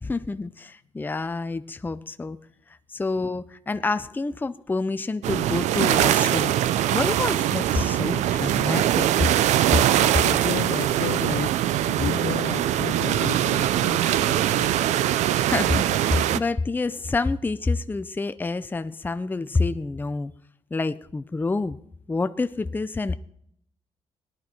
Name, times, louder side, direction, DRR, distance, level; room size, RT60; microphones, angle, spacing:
voice 1, 0.0-2.4 2.9-9.1 15.5-20.3 20.7-21.8 22.1-23.2, left 3 dB, 15° left, 12 dB, 0.5 m, -28 dB
sound 1, 5.2-16.4, right 12 dB, 85° right, 0.5 m, -22 dB
voice 2, 10.0-11.6 11.9-15.1, left 10 dB, 80° left, 12 dB, 0.8 m, -33 dB
18.5 x 11.0 x 4.4 m, 0.70 s
cardioid pair, 80°, 12 cm